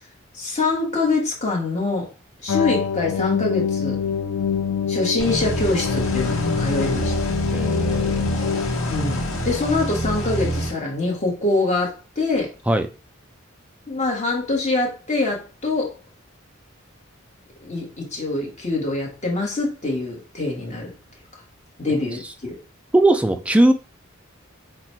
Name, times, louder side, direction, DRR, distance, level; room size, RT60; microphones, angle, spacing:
voice 1, 0.3-2.1 2.4-4.0 4.9-7.1 8.9-12.5 13.9-15.9 17.6-20.9 21.8-22.6, left 3 dB, 35° left, 1.4 m, -24 dB
sound 1, 2.5-9.6, left 7 dB, 70° left, 0.4 m, -26 dB
sound 2, 5.2-10.7, equal, 90° left, 1.0 m, -26 dB
voice 2, 7.5-8.4 12.7-12.9 22.9-23.7, right 1 dB, 5° right, 0.3 m, -19 dB
4.0 x 2.2 x 4.4 m
head